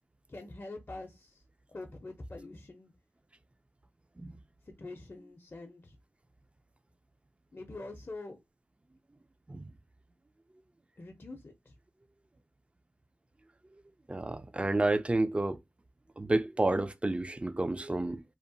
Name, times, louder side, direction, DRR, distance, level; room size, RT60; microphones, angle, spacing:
voice 1, 0.3-1.4 1.7-2.9 4.6-6.0 7.5-8.4 11.0-11.7, left 2 dB, 45° left, 0.6 m, -45 dB
voice 2, 14.1-15.6 16.2-18.2, right 2 dB, 20° right, 0.3 m, -30 dB
2.8 x 2.0 x 2.6 m
wide cardioid pair, 55°, 5 cm